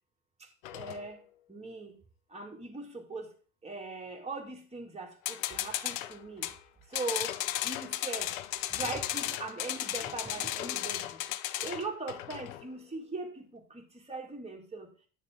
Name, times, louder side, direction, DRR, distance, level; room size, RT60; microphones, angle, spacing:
sound 1, 0.6-1.1 5.2-6.6 6.9-12.7, left 14 dB, 65° left, 0.7 m, -35 dB
voice 1, 0.7-1.2 1.5-2.0 2.3-3.3 3.6-6.5 6.9-7.3 7.6-8.3 8.7-11.2 11.6-14.9, right 3 dB, 15° right, 2.3 m, -40 dB
8.9 x 6.5 x 3.7 m
figure-of-eight pair, 65°, 44 cm